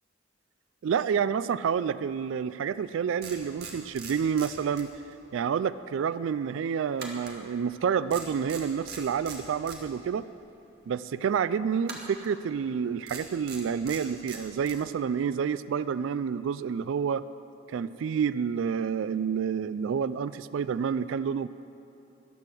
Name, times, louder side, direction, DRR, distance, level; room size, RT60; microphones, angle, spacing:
voice 1, 0.8-4.9 5.3-10.3 10.9-17.2 17.7-21.5, right 7 dB, 75° right, 15 dB, 0.3 m, -29 dB
sound 1, 2.7-2.8 3.2-5.3 5.5-5.7 7.0-7.8 8.1-9.8 11.8-12.3 13.0-14.8, right 5 dB, 50° right, 1.8 m, -42 dB
14.5 x 11.5 x 6.1 m, 2.8 s
head